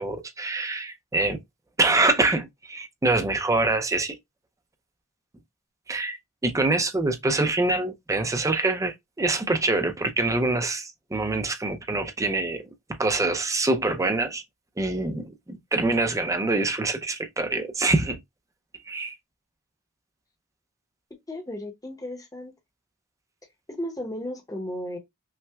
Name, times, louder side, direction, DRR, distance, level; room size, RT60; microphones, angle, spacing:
voice 1, 0.0-1.4 1.8-4.2 5.9-6.2 6.4-12.6 13.0-14.4 14.8-18.2 18.9-19.1, right 2 dB, 15° right, 0.5 m, -25 dB
voice 2, 21.3-22.5 23.7-25.0, left 1 dB, 15° left, 0.8 m, -34 dB
5.6 x 2.1 x 2.2 m
head